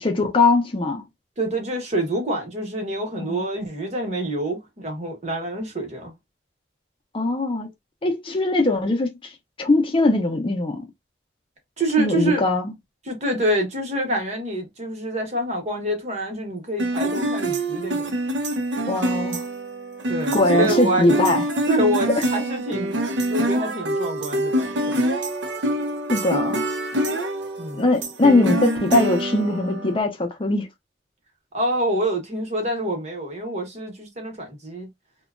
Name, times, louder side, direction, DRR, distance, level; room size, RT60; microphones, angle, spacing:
voice 1, 0.0-1.0 3.2-3.4 7.1-7.7 8.0-9.3 9.6-10.8 12.0-12.7 18.9-19.4 20.3-21.4 26.1-26.6 27.8-30.7, left 2 dB, 30° left, 0.5 m, -21 dB
voice 2, 1.4-6.1 11.8-12.5 13.1-18.1 20.1-21.2 21.7-23.0 23.3-25.0 27.6-27.8 31.5-34.9, right 1 dB, 40° right, 1.0 m, -26 dB
sound 1, 16.8-30.0, right 1 dB, 85° right, 0.6 m, -25 dB
2.7 x 2.2 x 2.4 m
head